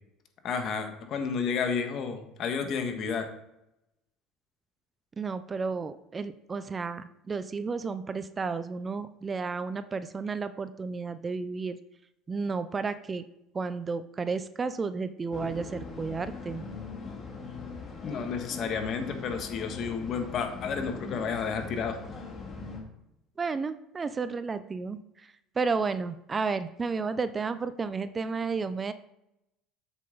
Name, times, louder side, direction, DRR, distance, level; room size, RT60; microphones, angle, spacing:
voice 1, 0.4-3.3 18.0-22.0, left 6 dB, 50° left, 6 dB, 1.5 m, -31 dB
voice 2, 5.2-11.8 12.3-13.2 13.5-16.6 23.4-28.9, right 4 dB, 25° right, 13 dB, 0.5 m, -32 dB
sound 1, 15.3-22.8, left 4 dB, 30° left, 2.4 m, -40 dB
7.6 x 7.1 x 3.9 m, 0.83 s
supercardioid pair, 95°, 0 cm